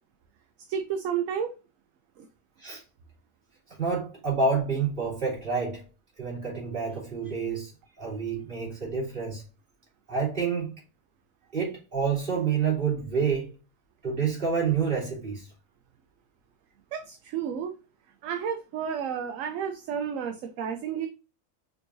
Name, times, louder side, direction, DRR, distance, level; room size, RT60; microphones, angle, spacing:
voice 1, 0.7-1.5 2.2-2.3 16.9-17.8 18.2-21.1, right 8 dB, 75° right, 1.0 m, -31 dB
voice 2, 3.8-5.8 6.2-7.7 8.0-9.4 10.1-10.7 11.5-13.5 14.0-15.5, right 5 dB, 40° right, 2.7 m, -28 dB
4.9 x 3.8 x 2.6 m
omnidirectional pair, 1.4 m